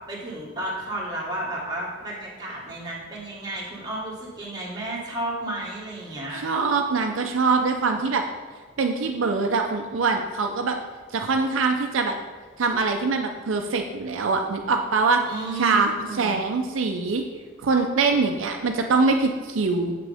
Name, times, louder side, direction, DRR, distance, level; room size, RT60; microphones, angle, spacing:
voice 1, 0.1-6.4 15.2-16.4, right 1 dB, 20° right, -5 dB, 1.5 m, -32 dB
voice 2, 6.3-8.2 8.8-10.8 11.1-12.1 12.6-15.2 15.5-17.2 17.6-19.9, right 4 dB, 75° right, 4 dB, 0.5 m, -23 dB
7.6 x 6.1 x 3.5 m, 1.4 s
head